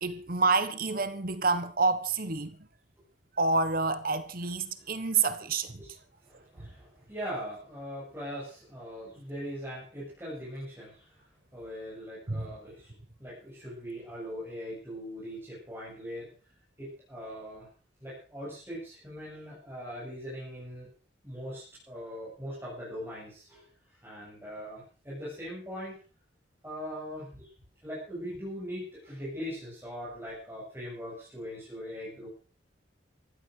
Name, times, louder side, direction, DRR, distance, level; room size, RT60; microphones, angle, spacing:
voice 1, 0.0-2.6 3.4-5.8 12.3-12.5, right 4 dB, 50° right, 1.4 m, -28 dB
voice 2, 4.4-4.9 5.8-6.0 6.2-12.9 13.2-16.3 16.8-17.7 18.0-20.9 21.2-26.0 26.6-27.5 27.8-32.3, equal, 15° right, 7.8 m, -41 dB
15.5 x 12.5 x 6.7 m
head